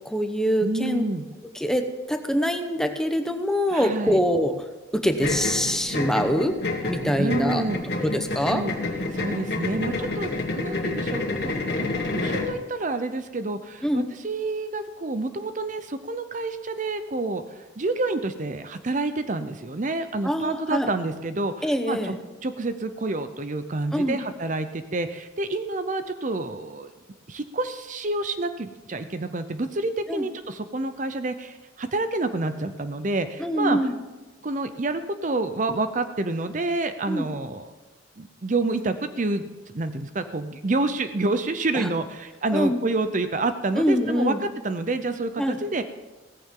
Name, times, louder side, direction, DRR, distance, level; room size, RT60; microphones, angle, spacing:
voice 1, 0.0-1.0 1.5-4.7 4.9-6.6 6.9-7.6 8.0-8.6 13.8-14.1 20.2-20.9 21.6-22.2 23.9-24.2 30.1-30.3 33.4-33.9 37.1-37.3 41.7-41.9 42.5-42.8 43.8-44.4 45.4-45.6, equal, 5° left, 6 dB, 0.9 m, -24 dB
voice 2, 0.6-1.3 3.7-4.2 7.2-7.8 8.5-8.7 9.1-17.4 17.8-22.1 22.4-26.9 27.3-33.8 34.4-37.7 38.2-45.8, right 2 dB, 45° right, 10 dB, 0.7 m, -28 dB
sound 1, 5.2-12.6, left 2 dB, 60° left, 2.1 m, -29 dB
16.5 x 14.5 x 3.8 m, 1.2 s
head